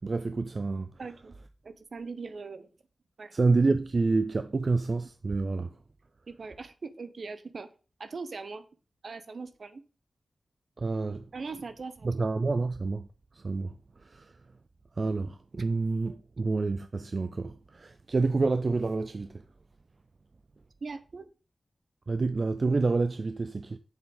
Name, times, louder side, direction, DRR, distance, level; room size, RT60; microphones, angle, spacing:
voice 1, 0.0-0.9 3.3-5.7 10.8-11.3 12.0-13.1 13.4-13.7 14.0-14.3 15.0-19.4 22.1-23.8, right 3 dB, 45° right, 0.5 m, -28 dB
voice 2, 1.0-1.3 1.6-2.7 3.2-3.4 6.3-7.7 8.0-8.6 9.0-9.8 11.3-12.3 20.8-21.3, right 4 dB, 65° right, 0.9 m, -40 dB
7.2 x 7.1 x 4.0 m
wide cardioid pair, 110°, 0 cm